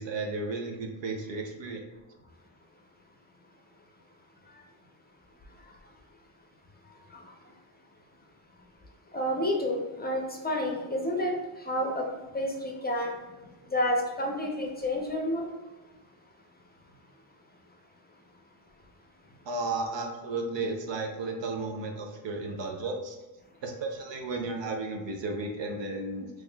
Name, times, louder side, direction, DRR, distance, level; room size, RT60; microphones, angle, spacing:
voice 1, 0.0-1.8 19.5-23.2 23.6-26.3, right 3 dB, 60° right, 3 dB, 0.7 m, -33 dB
voice 2, 9.1-11.3 11.6-12.1 12.3-13.1 13.7-15.5, left 1 dB, 20° left, 0 dB, 0.6 m, -29 dB
3.5 x 3.1 x 2.3 m, 1.1 s
cardioid pair, 85°, 49 cm